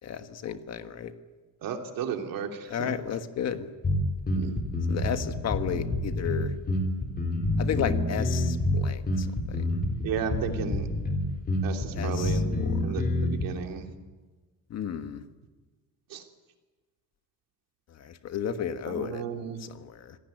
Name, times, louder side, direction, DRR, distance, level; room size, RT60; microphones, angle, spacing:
voice 1, 0.0-1.1 2.7-3.7 4.9-6.5 7.6-9.8 11.9-13.0 14.7-15.2 17.9-19.2 19.6-20.2, left 8 dB, 50° left, 9 dB, 1.5 m, -33 dB
voice 2, 1.6-2.9 4.3-4.6 10.0-10.9 11.6-12.6 12.8-13.9 16.1-16.2 18.9-19.6, right 7 dB, 75° right, 4 dB, 3.0 m, -34 dB
sound 1, 3.8-13.4, left 2 dB, 25° left, 3.8 m, -28 dB
26.5 x 17.5 x 9.3 m, 1.3 s
cardioid pair, 170°, 34 cm